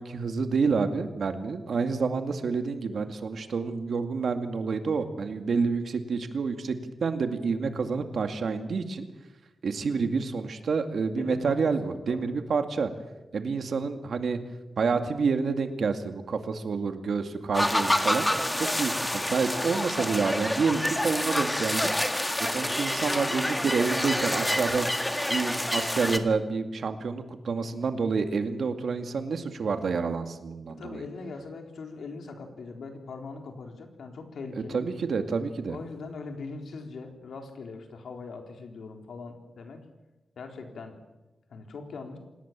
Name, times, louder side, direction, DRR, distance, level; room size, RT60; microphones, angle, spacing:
voice 1, 0.0-9.1 9.6-12.9 13.3-14.4 14.8-18.3 18.6-21.9 22.4-24.9 25.3-31.0 34.7-35.8, right 5 dB, 65° right, 7 dB, 2.3 m, -28 dB
voice 2, 11.2-11.7 12.1-12.3 30.8-34.8 35.7-39.9 40.4-41.0 41.5-42.2, left 4 dB, 85° left, 4 dB, 4.0 m, -41 dB
sound 1, 17.5-26.2, left 1 dB, 10° left, 1.8 m, -28 dB
27.0 x 19.0 x 7.6 m, 1.1 s
wide cardioid pair, 140°, 0 cm